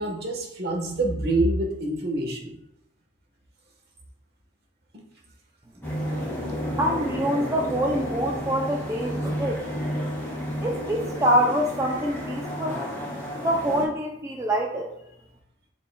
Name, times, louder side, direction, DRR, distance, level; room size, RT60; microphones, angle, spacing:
voice 1, 0.0-2.6, right 2 dB, 50° right, 0 dB, 1.3 m, -26 dB
sound 1, 5.8-13.9, equal, 10° left, 2.0 m, -31 dB
voice 2, 6.8-9.6 10.6-12.8 13.4-14.9, equal, 15° right, 0 dB, 0.4 m, -25 dB
10.0 x 4.0 x 2.3 m, 0.81 s
head